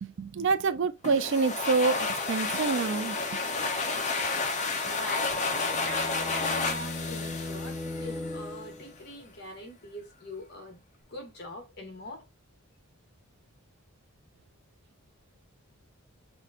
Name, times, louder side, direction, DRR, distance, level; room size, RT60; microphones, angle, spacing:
voice 1, 0.0-3.2, right 4 dB, 55° right, 0.4 m, -27 dB
sound 1, 1.0-8.5, left 3 dB, 30° left, 0.7 m, -31 dB
voice 2, 4.9-5.4 5.8-10.8 11.1-12.2, left 1 dB, 45° left, 1.4 m, -42 dB
sound 2, 5.1-9.0, left 2 dB, 5° right, 1.2 m, -38 dB
5.9 x 2.2 x 2.8 m
head